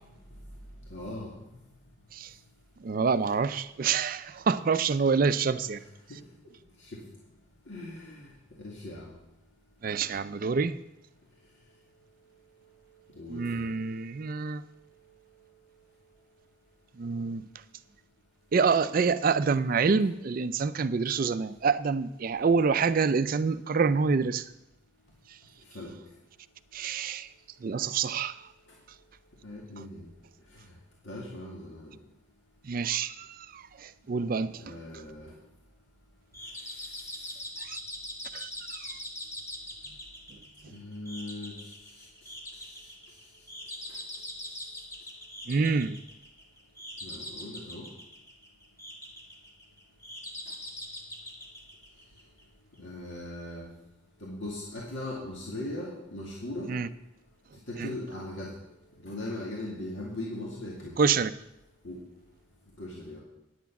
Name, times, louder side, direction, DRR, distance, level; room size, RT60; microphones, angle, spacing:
voice 1, 0.9-1.3 6.1-6.2 6.8-7.0 7.7-8.3 8.6-9.1 13.2-13.6 25.7-25.9 29.4-30.1 31.1-32.0 34.6-35.3 40.7-41.6 47.0-47.8 52.8-53.7 54.2-56.7 57.7-58.5 59.0-60.9 61.8-62.0 62.8-63.2, left 1 dB, 65° left, 2.2 m, -39 dB
voice 2, 2.8-5.8 9.8-10.8 13.3-14.6 17.0-17.4 18.5-24.5 26.7-27.3 27.6-28.4 32.6-34.6 37.6-37.8 38.3-39.0 45.5-46.0 56.7-56.9 57.8-57.9 61.0-61.3, right 5 dB, 45° right, 0.4 m, -27 dB
sound 1, 36.3-52.4, left 1 dB, 15° left, 1.5 m, -42 dB
9.4 x 9.3 x 5.9 m
head